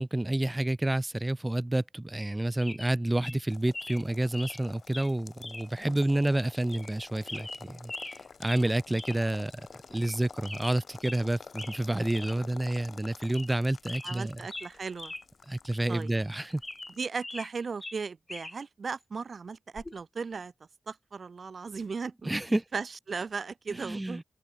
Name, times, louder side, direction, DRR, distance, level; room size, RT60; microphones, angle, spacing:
voice 1, 0.0-7.9 8.4-9.5 9.9-14.4 15.5-16.6 22.2-22.6 23.7-24.2, right 1 dB, 20° right, 2.1 m, -29 dB
sound 1, 2.2-2.3 2.6-2.9 3.2-3.4 3.7-4.0 4.3-4.6 4.9-5.1 5.4-5.7 6.0-6.1 6.7-7.0 7.3-8.2 8.4-8.7 8.9-9.2 9.5-9.6 9.9-10.2 10.4-11.2 11.6-11.8 12.1-12.4 12.7-12.8 13.2-13.6 13.9-15.2 15.5-15.6 16.2-17.5 17.8-18.6 19.8-20.0, left 2 dB, 25° left, 1.8 m, -42 dB
sound 2, 3.5-17.0, left 5 dB, 65° left, 4.4 m, -50 dB
voice 2, 14.0-15.1 15.9-16.1 17.0-20.5 20.9-22.3 22.7-24.2, right 5 dB, 60° right, 1.9 m, -37 dB
open air
cardioid pair, 50°, 0 cm